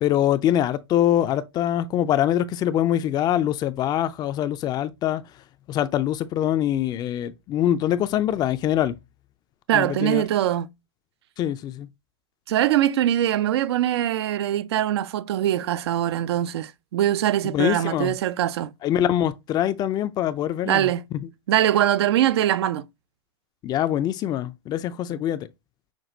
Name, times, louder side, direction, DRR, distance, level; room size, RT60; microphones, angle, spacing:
voice 1, 0.0-5.2 5.7-9.0 9.7-10.2 11.4-11.9 17.4-18.2 18.8-20.9 23.6-25.5, left 11 dB, 30° left, 0.4 m, -24 dB
voice 2, 9.7-10.7 12.5-18.7 20.7-21.0 21.5-22.9, right 12 dB, 70° right, 0.4 m, -22 dB
6.0 x 2.2 x 2.6 m
hypercardioid pair, 110°, 14 cm